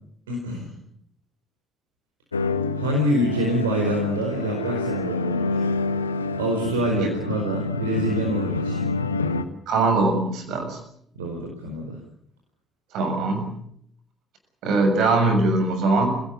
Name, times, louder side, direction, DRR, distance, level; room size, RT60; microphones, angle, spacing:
voice 1, 0.3-0.7 2.8-5.6 6.4-8.8 11.1-12.0, right 1 dB, 75° right, 0 dB, 4.5 m, -26 dB
sound 1, 2.3-9.4, left 3 dB, 85° left, 1.0 m, -27 dB
voice 2, 9.7-10.8 12.9-13.6 14.6-16.2, right 3 dB, 60° right, 6 dB, 6.8 m, -21 dB
28.5 x 17.5 x 8.3 m, 0.70 s
figure-of-eight pair, 45°, 0 cm